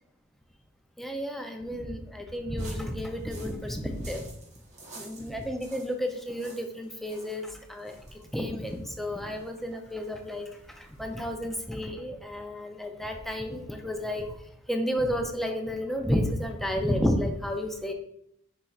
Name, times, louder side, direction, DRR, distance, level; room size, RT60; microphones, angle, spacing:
voice 1, 1.0-4.2 5.0-8.0 8.3-10.5 11.0-14.3 14.7-17.9, equal, ahead, 3 dB, 0.4 m, -31 dB
sound 1, 2.6-11.3, right 2 dB, 35° right, 0.8 m, -52 dB
5.2 x 4.3 x 2.4 m, 0.76 s
head